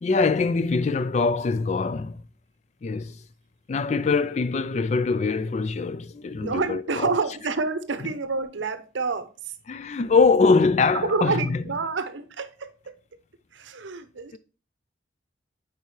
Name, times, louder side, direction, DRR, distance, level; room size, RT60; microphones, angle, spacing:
voice 1, 0.0-2.2 2.8-3.2 3.7-7.1 9.7-11.6 14.3-14.4, left 4 dB, 35° left, 0.3 m, -23 dB
voice 2, 6.4-9.5 10.9-13.0 13.5-14.4, right 4 dB, 85° right, 0.7 m, -28 dB
8.3 x 4.7 x 3.2 m
head